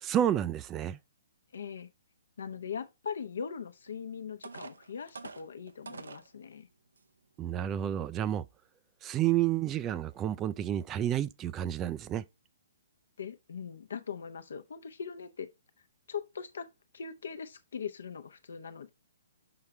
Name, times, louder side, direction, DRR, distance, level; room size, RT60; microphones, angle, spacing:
voice 1, 0.0-1.0 7.4-8.4 9.0-12.2, right 11 dB, 20° right, 0.3 m, -30 dB
voice 2, 1.5-1.9 2.4-6.7 13.2-15.5 16.1-16.7 16.9-18.9, left 6 dB, 65° left, 0.8 m, -40 dB
sound 1, 3.9-4.0 4.4-6.3 7.0-7.1 7.6-7.8, right 4 dB, 75° right, 0.6 m, -46 dB
5.7 x 5.7 x 3.2 m
figure-of-eight pair, 125°, 0 cm